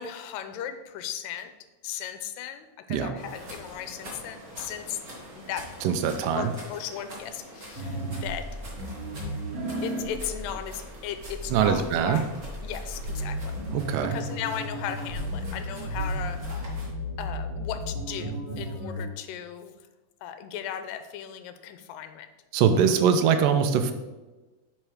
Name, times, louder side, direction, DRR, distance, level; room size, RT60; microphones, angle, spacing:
voice 1, 0.0-1.5 1.8-5.0 5.3-5.7 6.3-8.5 9.8-12.3 12.6-13.6 13.9-16.8 17.2-19.7 20.2-22.3 22.7-22.9, left 9 dB, 90° left, 9 dB, 2.3 m, -37 dB
sound 1, 3.2-16.9, equal, 30° right, 1.8 m, -45 dB
voice 2, 5.8-6.5 11.5-12.2 13.7-14.2 22.5-23.9, right 7 dB, 85° right, 8 dB, 2.2 m, -22 dB
sound 2, 7.8-19.0, equal, 50° right, 3.7 m, -34 dB
9.1 x 4.5 x 4.9 m, 1.2 s
omnidirectional pair, 4.0 m